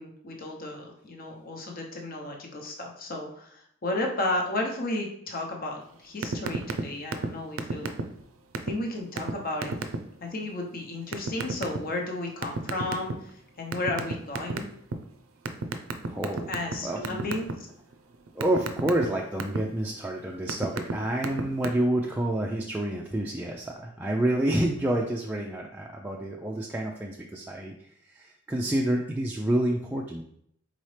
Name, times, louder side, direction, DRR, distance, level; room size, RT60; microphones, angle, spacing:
voice 1, 0.0-7.9 8.6-9.7 10.2-14.7 16.5-17.7, left 2 dB, 45° left, 1 dB, 0.8 m, -33 dB
sound 1, 6.2-6.8 7.1-7.3 7.6-8.2 8.5-8.7 9.2-9.3 9.6-10.0 11.1-11.8 12.4-13.3 13.7-14.9 15.5-16.7 17.0-17.5 17.9-19.6 20.2-20.9 21.2-21.7, right 4 dB, 85° right, 0.5 m, -29 dB
voice 2, 16.1-16.5 16.8-17.2 18.4-27.7 28.1-30.2, right 1 dB, 10° right, -1 dB, 0.3 m, -28 dB
4.2 x 3.9 x 3.2 m, 0.70 s
head